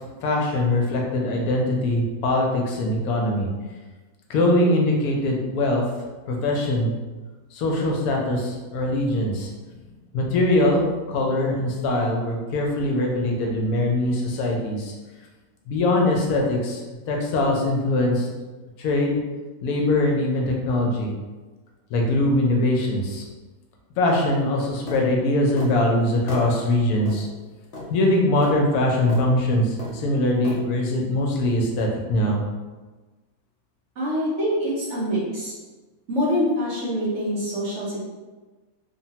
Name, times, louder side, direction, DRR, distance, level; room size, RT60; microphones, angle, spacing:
voice 1, 0.2-3.5 4.3-5.8 6.3-6.9 7.5-9.5 10.1-14.9 15.7-16.8 17.1-18.3 18.8-19.2 19.6-21.1 21.9-23.2 24.0-27.3 27.9-32.4, left 1 dB, 80° left, 0 dB, 1.1 m, -22 dB
sound 1, 24.9-25.0 25.6-25.8 26.3-26.5 27.0-27.2 27.7-27.9 28.4-28.6 29.1-29.3 29.8-30.0 30.4-30.6, left 2 dB, 55° left, 0.6 m, -34 dB
voice 2, 34.0-35.5 36.1-38.0, equal, 55° right, -7 dB, 1.1 m, -25 dB
3.1 x 2.1 x 2.8 m, 1.3 s
omnidirectional pair, 1.6 m